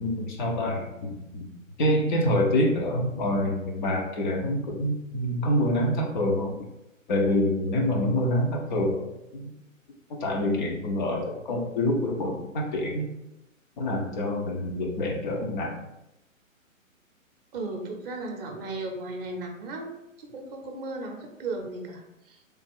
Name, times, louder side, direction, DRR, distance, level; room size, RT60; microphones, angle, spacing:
voice 1, 0.0-1.5 1.8-6.6 7.1-9.1 9.3-9.5 10.2-13.1 13.8-15.8, left 1 dB, 35° left, 0 dB, 0.7 m, -26 dB
voice 2, 17.5-22.4, right 2 dB, 45° right, 2 dB, 0.7 m, -36 dB
3.3 x 2.4 x 3.4 m, 0.92 s
figure-of-eight pair, 125°, 40 cm